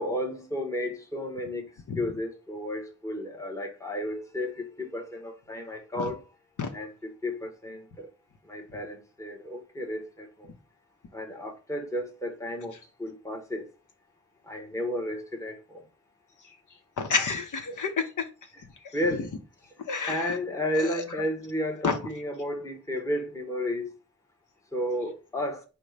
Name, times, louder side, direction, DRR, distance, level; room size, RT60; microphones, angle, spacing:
voice 1, 0.0-1.7 2.0-6.2 6.7-8.1 8.5-10.5 11.1-13.7 14.5-15.8 18.5-18.6 18.9-19.3 20.1-23.9 24.7-25.6, left 1 dB, 10° left, 0.9 m, -32 dB
voice 2, 17.0-18.2 19.9-20.3 21.8-22.0, left 5 dB, 80° left, 0.7 m, -29 dB
5.2 x 2.1 x 4.6 m
wide cardioid pair, 110°, 30 cm